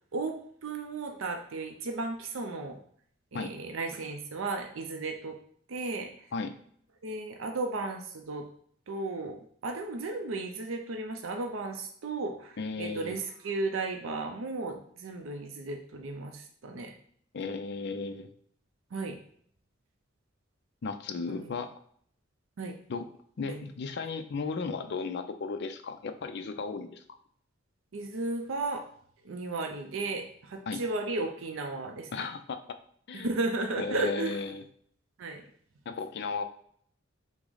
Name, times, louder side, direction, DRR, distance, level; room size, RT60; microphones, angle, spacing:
voice 1, 0.1-2.8 3.3-5.4 5.7-6.1 7.0-8.5 8.9-9.4 9.6-16.9 18.9-19.2 21.3-21.5 22.6-22.7 23.5-23.6 27.9-28.8 29.2-32.1 33.1-34.4 35.2-35.4, right 3 dB, 85° right, 4 dB, 0.5 m, -34 dB
voice 2, 12.6-13.2 17.3-18.3 20.8-21.7 22.9-23.1 23.4-27.0 30.7-30.8 32.1-32.6 33.1-33.3 33.8-34.6 35.9-36.4, left 4 dB, 55° left, 9 dB, 0.4 m, -35 dB
6.0 x 2.1 x 3.9 m, 0.62 s
head